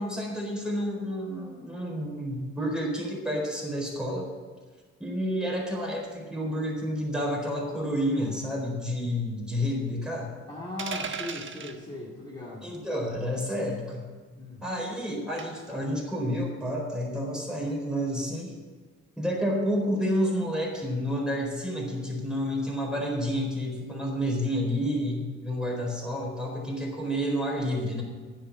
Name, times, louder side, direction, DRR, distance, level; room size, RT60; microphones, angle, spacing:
voice 1, 0.0-4.3 5.0-10.3 12.6-14.1 14.6-18.5 19.2-28.0, equal, 5° right, -1 dB, 4.2 m, -30 dB
voice 2, 10.5-12.8 14.3-14.6, left 2 dB, 15° left, -6 dB, 2.5 m, -38 dB
sound 1, 10.8-11.8 13.4-13.6 15.4-15.7, right 5 dB, 40° right, 1.2 m, -36 dB
10.0 x 7.6 x 8.1 m, 1.4 s
cardioid pair, 90°, 30 cm